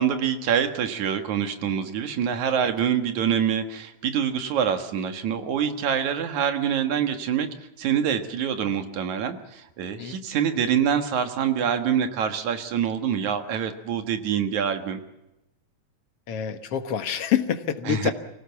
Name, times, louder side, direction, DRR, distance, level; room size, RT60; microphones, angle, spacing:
voice 1, 0.0-7.5 7.8-15.0 17.9-18.1, right 8 dB, 75° right, 7 dB, 2.9 m, -25 dB
voice 2, 16.3-18.1, left 9 dB, 60° left, 8 dB, 2.0 m, -26 dB
25.0 x 17.5 x 7.1 m, 0.92 s
omnidirectional pair, 3.4 m